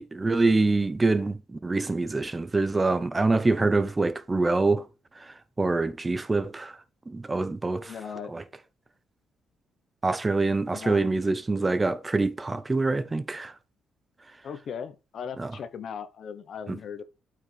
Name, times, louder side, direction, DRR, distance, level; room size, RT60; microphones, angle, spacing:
voice 1, 0.0-4.9 5.2-6.8 7.1-7.9 8.3-8.4 10.0-13.5 15.4-15.5 16.7-16.8, right 3 dB, 20° right, 0.8 m, -25 dB
voice 2, 7.8-8.3 10.7-11.0 14.4-17.0, left 7 dB, 60° left, 1.0 m, -38 dB
9.1 x 5.6 x 3.4 m
cardioid pair, 90°, 0 cm